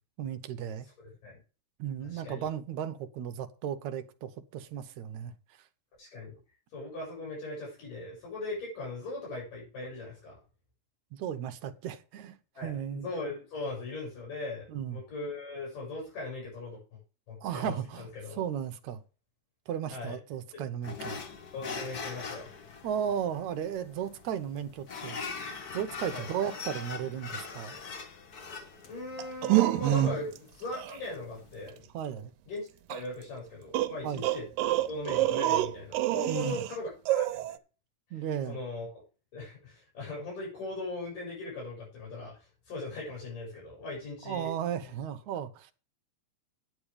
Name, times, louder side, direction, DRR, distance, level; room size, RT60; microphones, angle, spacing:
voice 1, 0.2-0.9 1.8-5.3 11.1-13.1 14.7-15.0 17.4-19.0 19.7-21.2 22.8-25.5 25.7-27.8 31.9-32.3 34.0-34.2 36.3-36.6 38.1-38.6 44.3-45.7, right 9 dB, 70° right, 2.1 m, -35 dB
voice 2, 1.0-1.4 2.1-2.5 6.0-6.3 6.7-10.4 12.5-17.0 17.3-18.4 19.9-20.2 20.5-20.6 21.5-22.5 26.1-26.2 28.8-31.8 32.5-34.4 34.9-37.6 38.5-38.9 39.3-44.5, left 2 dB, 70° left, 8.0 m, -39 dB
sound 1, 20.8-31.7, left 4 dB, 90° left, 0.8 m, -42 dB
sound 2, 29.2-30.4 30.7-31.0 32.9-33.0 33.7-36.7 37.1-37.6, right 14 dB, 85° right, 2.4 m, -27 dB
10.0 x 8.7 x 5.0 m
omnidirectional pair, 3.9 m